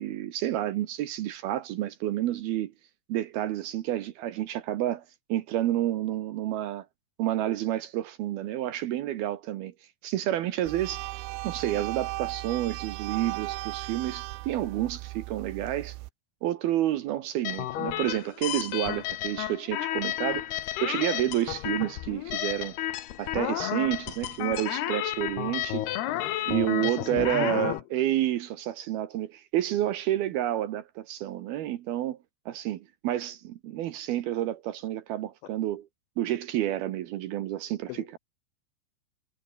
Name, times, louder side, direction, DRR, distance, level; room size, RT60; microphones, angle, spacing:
voice 1, 0.0-2.7 3.1-5.0 5.3-6.9 7.2-9.7 10.0-11.0 11.4-16.0 16.4-22.8 23.2-25.9 26.5-32.2 32.5-35.9 36.2-38.1, right 13 dB, 70° right, 2.6 m, -29 dB
sound 1, 10.7-16.1, right 20 dB, 90° right, 3.0 m, -37 dB
sound 2, 17.4-27.8, left 14 dB, 65° left, 3.0 m, -32 dB
voice 2, 26.8-27.8 37.9-38.2, left 19 dB, 85° left, 3.0 m, -36 dB
omnidirectional pair, 5.3 m